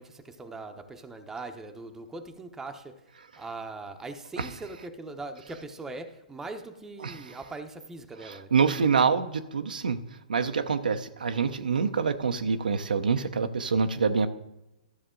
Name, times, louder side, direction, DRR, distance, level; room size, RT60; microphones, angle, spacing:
voice 1, 0.0-3.0 3.4-8.5, right 3 dB, 10° right, 0.8 m, -41 dB
voice 2, 7.0-7.4 8.2-10.0 10.3-14.3, right 5 dB, 85° right, 0.7 m, -26 dB
12.5 x 6.6 x 3.8 m
hypercardioid pair, 130°, 4 cm